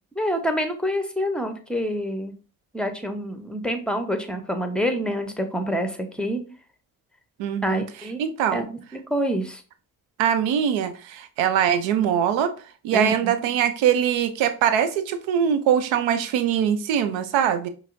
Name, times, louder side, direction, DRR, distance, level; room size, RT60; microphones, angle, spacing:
voice 1, 0.2-2.3 2.7-6.4 7.6-8.2 8.5-8.8 9.1-9.6 12.9-13.4, equal, ahead, 6 dB, 0.7 m, -27 dB
voice 2, 7.4-7.8 8.2-8.7 10.2-12.5 12.8-17.7, right 9 dB, 85° right, 11 dB, 0.6 m, -22 dB
5.4 x 2.0 x 2.5 m, 0.37 s
supercardioid pair, 45°, 46 cm